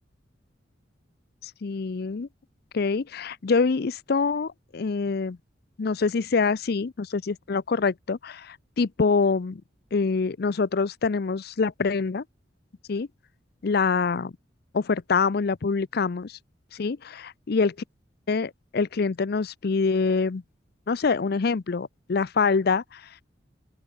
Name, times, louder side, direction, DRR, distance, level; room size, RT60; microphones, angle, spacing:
voice 1, 1.4-2.3 2.7-5.4 5.8-9.6 9.9-12.2 12.9-13.1 13.6-14.3 14.7-16.4 16.7-17.2 17.5-17.7 18.3-20.4 20.9-23.2, left 4 dB, 55° left, 0.5 m, -25 dB
open air
head